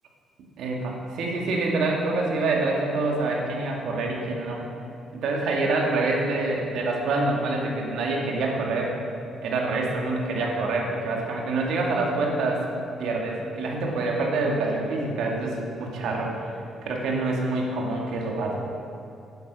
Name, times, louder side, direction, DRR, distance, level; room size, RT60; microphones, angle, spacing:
voice 1, 0.6-4.6 5.1-8.9 9.4-12.6 13.0-16.5 16.8-18.6, right 2 dB, 80° right, -1 dB, 2.4 m, -26 dB
12.0 x 9.8 x 6.3 m, 2.8 s
cardioid pair, 90°, 0 cm